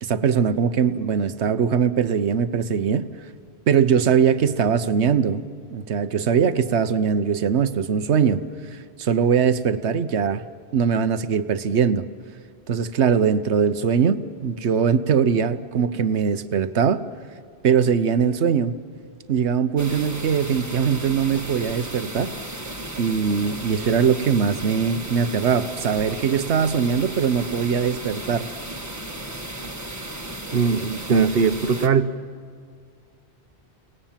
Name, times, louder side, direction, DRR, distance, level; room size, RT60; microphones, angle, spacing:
voice 1, 0.0-3.1 3.7-5.4 5.7-8.4 8.7-10.4 10.7-12.0 12.7-17.0 17.6-18.8 19.3-22.3 23.0-28.5, right 7 dB, 85° right, 1.2 m, -21 dB
sound 1, 19.8-31.9, right 1 dB, 15° right, 1.4 m, -35 dB
voice 2, 30.5-32.1, right 5 dB, 60° right, 1.1 m, -20 dB
30.0 x 19.0 x 7.4 m
omnidirectional pair, 1.1 m